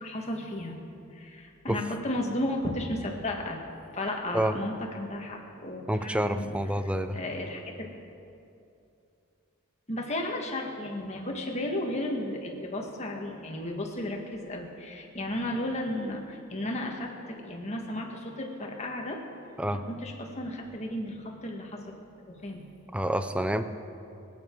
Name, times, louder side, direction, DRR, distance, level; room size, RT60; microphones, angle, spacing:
voice 1, 0.0-0.8 1.1-3.6 3.9-6.6 7.1-7.9 9.9-19.2 19.7-21.8 22.3-22.6, left 1 dB, 30° left, 1 dB, 1.7 m, -34 dB
voice 2, 5.9-7.2 19.6-19.8 22.9-23.6, right 1 dB, 5° right, 9 dB, 0.5 m, -28 dB
25.0 x 9.0 x 4.7 m, 2.7 s
head